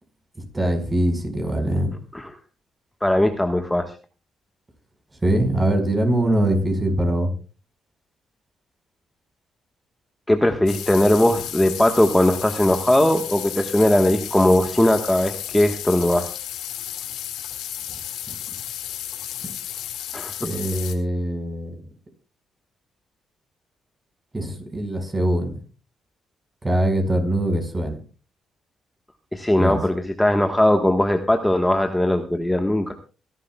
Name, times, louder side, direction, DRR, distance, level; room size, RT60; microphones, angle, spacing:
voice 1, 0.5-1.9 5.2-7.3 17.9-18.0 20.4-21.7 24.3-25.6 26.6-28.0 29.6-29.8, right 1 dB, 20° right, 5 dB, 4.9 m, -22 dB
voice 2, 3.0-3.9 10.3-16.4 20.1-20.3 29.3-32.9, left 1 dB, 5° left, 5 dB, 1.3 m, -19 dB
sound 1, 10.7-20.9, left 11 dB, 85° left, 2.0 m, -33 dB
27.5 x 11.5 x 2.3 m, 0.34 s
cardioid pair, 90°, 0 cm